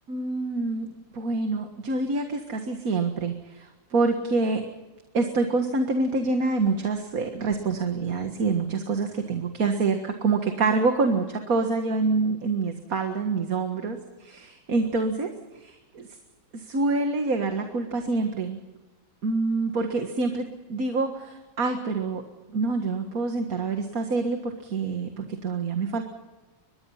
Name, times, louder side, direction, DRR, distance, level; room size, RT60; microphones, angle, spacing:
voice 1, 0.1-0.9 1.1-4.6 5.1-16.1 16.5-18.6 19.2-22.2 22.5-26.0, right 3 dB, 55° right, 5 dB, 2.0 m, -26 dB
24.5 x 21.0 x 5.7 m, 1.2 s
omnidirectional pair, 1.9 m